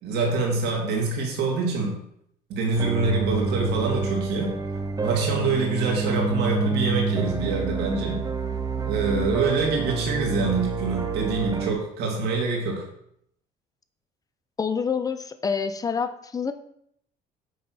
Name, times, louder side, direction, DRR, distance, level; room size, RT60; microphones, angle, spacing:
voice 1, 0.0-2.0 2.5-4.5 5.0-8.2 8.9-12.8, right 3 dB, 80° right, 0 dB, 2.3 m, -25 dB
sound 1, 2.7-11.7, right 4 dB, 20° right, 0.8 m, -28 dB
voice 2, 14.6-16.5, left 6 dB, 20° left, 9 dB, 0.7 m, -27 dB
9.4 x 3.2 x 6.1 m, 0.71 s
cardioid pair, 110°, 17 cm